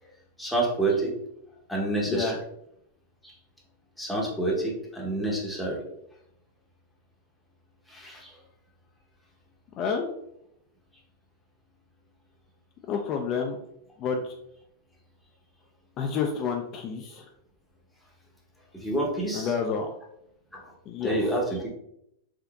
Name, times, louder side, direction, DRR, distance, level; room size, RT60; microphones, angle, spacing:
voice 1, 0.4-1.1 1.7-2.4 3.2-3.4 4.0-5.8 7.9-8.4 18.7-19.5 20.5-20.7 21.0-21.7, right 2 dB, ahead, -3 dB, 0.8 m, -28 dB
voice 2, 9.8-10.1 12.9-13.6 14.0-14.3 16.0-17.3 19.3-19.9 20.9-21.2, left 6 dB, 40° left, 2 dB, 0.3 m, -29 dB
3.7 x 2.5 x 2.3 m, 0.77 s
supercardioid pair, 130°, 0 cm